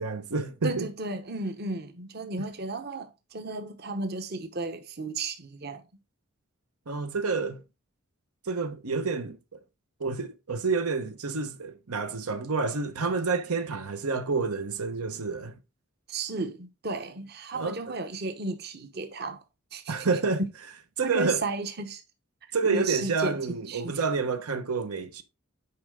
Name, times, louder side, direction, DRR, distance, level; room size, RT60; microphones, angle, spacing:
voice 1, 0.0-0.9 6.9-7.6 8.4-9.6 10.0-15.6 17.5-18.0 19.9-20.4 21.0-21.4 22.5-25.2, right 4 dB, 90° right, 1.0 m, -29 dB
voice 2, 0.6-5.8 16.1-19.4 19.7-20.1 21.0-22.0 22.6-23.4 23.7-24.0, right 3 dB, 45° right, 0.9 m, -34 dB
9.6 x 4.8 x 3.6 m
head